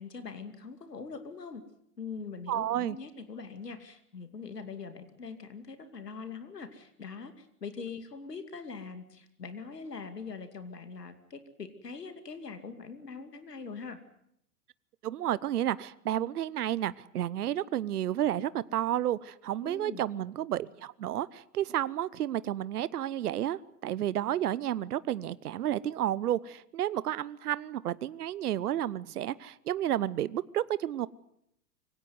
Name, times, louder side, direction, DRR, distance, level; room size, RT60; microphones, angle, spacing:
voice 1, 0.0-1.6 2.0-14.0 19.6-20.0, left 5 dB, 85° left, 9 dB, 2.7 m, -42 dB
voice 2, 2.5-3.0 15.0-31.1, right 12 dB, 70° right, 19 dB, 1.0 m, -31 dB
24.5 x 17.0 x 9.6 m, 0.76 s
hypercardioid pair, 105°, 47 cm